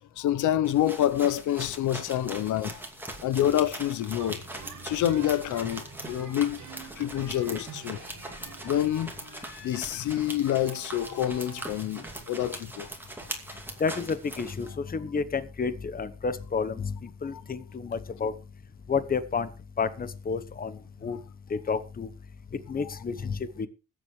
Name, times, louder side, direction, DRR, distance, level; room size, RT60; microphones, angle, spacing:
voice 1, 0.2-2.8 3.2-4.4 4.8-6.6 7.0-8.0 8.6-9.1 9.6-12.9 17.3-17.4, left 12 dB, 80° left, 0.9 m, -27 dB
sound 1, 0.6-14.7, right 1 dB, 5° right, 2.4 m, -41 dB
sound 2, 4.2-12.8, right 6 dB, 75° right, 2.5 m, -48 dB
Laughter, 6.5-7.6 7.9-8.9 9.2-12.0, left 4 dB, 60° left, 5.0 m, -54 dB
voice 2, 13.8-18.3 18.9-19.5 19.8-21.2 21.5-22.1 22.7-23.7, left 5 dB, 30° left, 1.1 m, -30 dB
20.5 x 7.6 x 3.2 m
cardioid pair, 90°, 30 cm